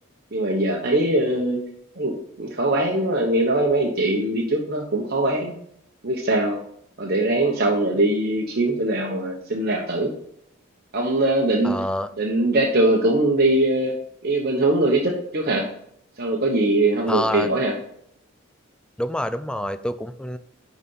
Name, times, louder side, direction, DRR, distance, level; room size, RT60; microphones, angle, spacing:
voice 1, 0.3-1.6 2.0-5.5 6.0-6.6 7.0-10.1 10.9-11.8 12.2-13.9 14.2-15.7 16.2-17.7, right 1 dB, 50° right, 0 dB, 1.0 m, -21 dB
voice 2, 11.6-12.1 17.1-17.5 19.0-20.4, left 1 dB, 5° left, 11 dB, 0.3 m, -27 dB
10.5 x 4.1 x 5.6 m, 0.73 s
head